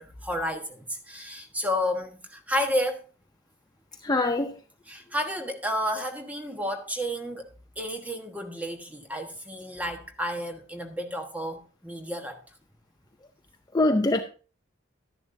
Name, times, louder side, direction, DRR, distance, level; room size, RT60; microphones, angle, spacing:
voice 1, 0.0-3.0 4.8-7.5 7.8-12.4, equal, 10° right, 1.3 m, -31 dB
voice 2, 4.0-4.5 13.7-14.2, left 2 dB, 20° left, 0.5 m, -23 dB
12.0 x 10.5 x 2.7 m
head